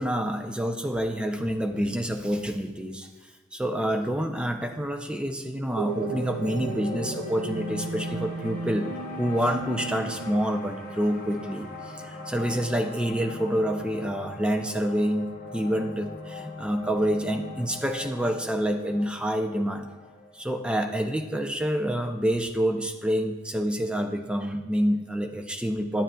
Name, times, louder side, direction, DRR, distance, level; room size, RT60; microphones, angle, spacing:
voice 1, 0.0-3.1 3.5-8.9 9.2-11.7 11.9-19.9 20.3-26.0, equal, 5° right, 5 dB, 0.4 m, -27 dB
sound 1, 5.7-12.3, right 3 dB, 85° right, 0.5 m, -36 dB
sound 2, 5.9-22.1, left 2 dB, 40° left, 0.9 m, -41 dB
9.9 x 8.8 x 2.3 m, 1.2 s
head